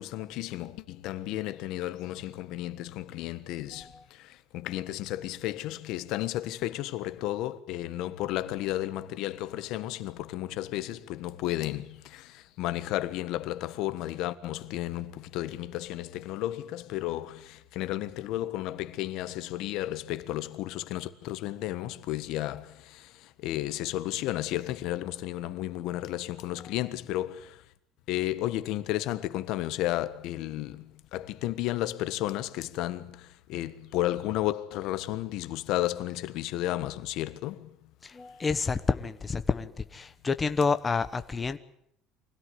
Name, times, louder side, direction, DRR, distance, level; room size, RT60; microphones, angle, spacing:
voice 1, 0.0-27.6 28.1-37.8, left 14 dB, 60° left, 1.4 m, -33 dB
voice 2, 38.0-41.6, left 4 dB, 15° left, 1.1 m, -29 dB
24.5 x 17.0 x 9.7 m
cardioid pair, 160°, 0 cm